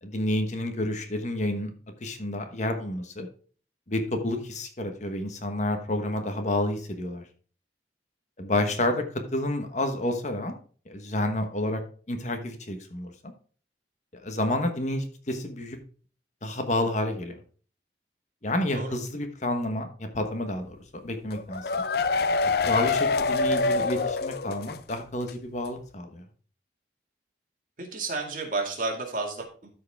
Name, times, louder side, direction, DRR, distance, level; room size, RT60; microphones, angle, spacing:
voice 1, 0.0-1.7 2.0-3.3 3.9-7.2 8.4-10.6 10.9-11.8 12.1-13.3 14.2-15.8 16.4-17.3 18.4-20.8 21.0-21.8 22.7-26.2, left 1 dB, 40° left, 6 dB, 1.2 m, -29 dB
sound 1, 21.3-24.9 25.2-25.3 25.6-25.7, left 4 dB, 60° left, 0.5 m, -26 dB
voice 2, 27.8-29.7, right 3 dB, 50° right, 2 dB, 2.2 m, -31 dB
13.0 x 4.7 x 3.5 m, 0.42 s
head